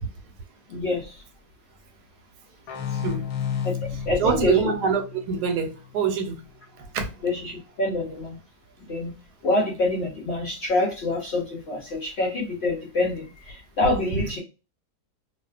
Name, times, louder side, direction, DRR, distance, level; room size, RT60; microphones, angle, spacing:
voice 1, 0.7-1.2 2.9-3.0 3.6-4.6 7.2-8.4 8.8-9.2 9.4-14.4, left 2 dB, 65° left, 0.7 m, -26 dB
sound 1, 2.7-6.1, left 8 dB, 85° left, 1.1 m, -32 dB
voice 2, 4.2-6.4 6.9-7.1, right 6 dB, 90° right, 1.2 m, -24 dB
2.5 x 2.3 x 2.3 m
omnidirectional pair, 1.7 m